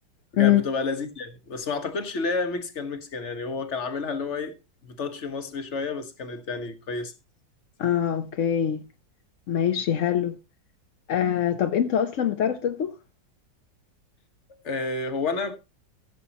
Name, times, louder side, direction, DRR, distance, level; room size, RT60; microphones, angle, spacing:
voice 1, 0.3-4.5 4.8-7.1 14.6-15.6, left 4 dB, 45° left, 1.4 m, -30 dB
voice 2, 7.8-8.8 9.5-10.4 11.1-12.9, left 10 dB, 60° left, 0.9 m, -23 dB
15.5 x 7.6 x 2.9 m
omnidirectional pair, 2.0 m